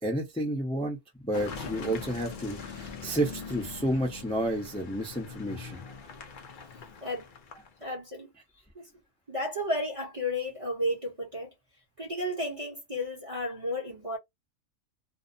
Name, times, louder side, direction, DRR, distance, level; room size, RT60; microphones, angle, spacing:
voice 1, 0.0-5.8, right 1 dB, 5° left, 0.6 m, -31 dB
Car passing by / Engine, 1.3-7.9, left 5 dB, 55° left, 0.6 m, -42 dB
voice 2, 7.8-8.3 8.7-8.9 9.3-11.5 12.0-14.2, left 1 dB, 30° right, 0.8 m, -33 dB
2.8 x 2.0 x 2.5 m
omnidirectional pair, 1.4 m